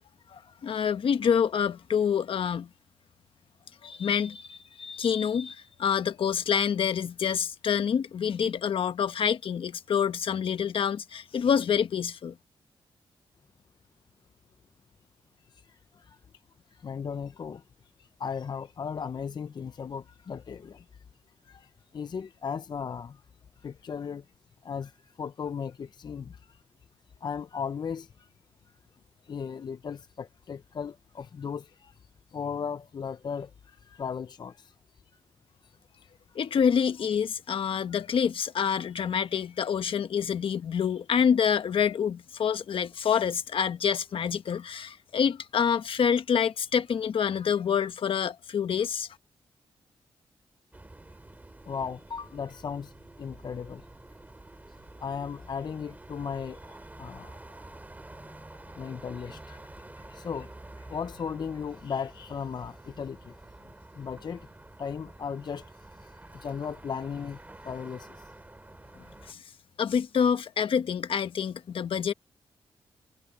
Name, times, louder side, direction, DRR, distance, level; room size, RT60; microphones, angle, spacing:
voice 1, 0.3-2.7 3.8-12.3 36.3-49.1 69.3-69.4 69.8-72.1, left 7 dB, 65° left, 1.3 m, -27 dB
voice 2, 15.5-16.2 16.7-17.6 18.0-21.0 21.4-23.2 23.6-24.2 24.6-26.6 27.2-28.3 29.2-34.7 35.6-36.1 51.7-52.9 53.2-53.9 54.7-57.8 58.4-63.3 63.9-64.5 64.8-68.3, left 6 dB, 50° left, 0.6 m, -37 dB
sound 1, 50.7-69.3, right 2 dB, 15° right, 2.8 m, -49 dB
cardioid pair, 85°, 10 cm